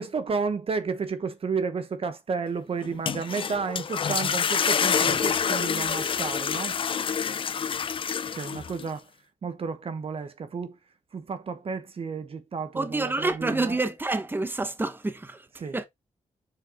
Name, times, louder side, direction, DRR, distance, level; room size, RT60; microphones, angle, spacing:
voice 1, 0.0-6.8 8.3-9.1 9.4-10.8 11.1-13.8 15.6-15.8, right 5 dB, 50° right, 0.9 m, -32 dB
sound 1, 2.8-8.9, left 7 dB, 45° left, 0.5 m, -27 dB
voice 2, 12.7-15.5 15.7-15.8, right 2 dB, 15° right, 1.0 m, -28 dB
6.9 x 4.8 x 3.7 m
cardioid pair, 100°, 13 cm